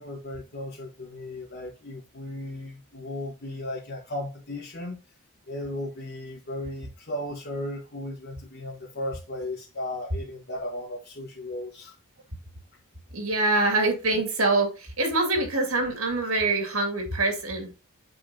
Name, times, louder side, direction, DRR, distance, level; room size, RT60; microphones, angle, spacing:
voice 1, 0.0-5.0 5.5-12.0, left 1 dB, 50° left, 1.6 m, -36 dB
voice 2, 13.1-14.7 15.0-17.8, right 2 dB, 70° right, 2.4 m, -24 dB
8.1 x 5.4 x 2.8 m
head